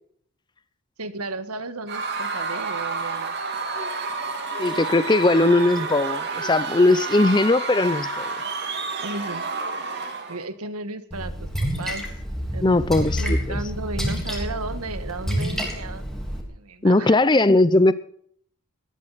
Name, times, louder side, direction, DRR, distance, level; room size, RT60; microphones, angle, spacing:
voice 1, 1.0-3.3 9.0-9.5 10.3-11.5 11.8-12.0 12.5-17.2, right 2 dB, 85° right, 1.6 m, -34 dB
Screaming / Cheering / Crowd, 1.9-10.4, right 4 dB, 50° right, 2.9 m, -30 dB
voice 2, 4.6-8.3 12.6-13.6 16.8-17.9, left 2 dB, 20° left, 0.5 m, -19 dB
Splash splatter, 11.1-16.4, equal, ahead, 3.5 m, -28 dB
18.5 x 13.0 x 4.1 m
head